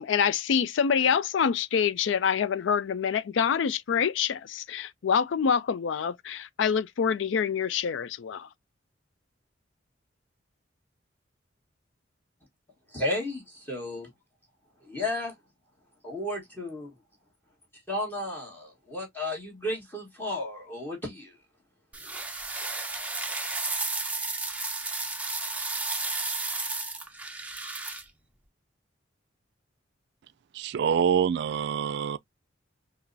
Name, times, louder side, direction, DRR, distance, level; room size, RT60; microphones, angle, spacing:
voice 1, 0.0-8.5, left 7 dB, 75° left, 0.4 m, -26 dB
voice 2, 12.9-14.1 14.8-15.3 16.0-16.9 17.9-21.3, left 1 dB, 10° left, 1.4 m, -33 dB
sound 1, 21.9-28.0, right 3 dB, 10° right, 0.6 m, -33 dB
voice 3, 30.5-32.2, right 7 dB, 60° right, 0.3 m, -26 dB
5.9 x 2.0 x 2.6 m
head